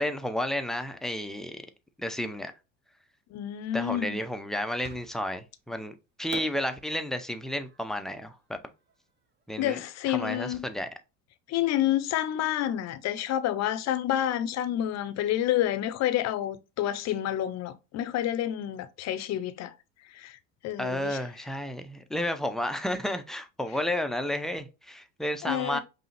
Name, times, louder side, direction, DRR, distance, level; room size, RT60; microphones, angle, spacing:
voice 1, 0.0-1.6 2.0-2.5 3.7-8.6 9.5-10.9 20.8-25.8, left 1 dB, ahead, 0.4 m, -32 dB
voice 2, 3.3-4.2 9.6-10.7 11.5-19.7 20.1-20.4 20.6-21.2 25.4-25.8, left 12 dB, 45° left, 0.6 m, -29 dB
Fireworks, 4.8-5.5 6.3-9.4, right 5 dB, 30° right, 0.7 m, -47 dB
5.4 x 2.0 x 3.1 m
hypercardioid pair, 80°, 38 cm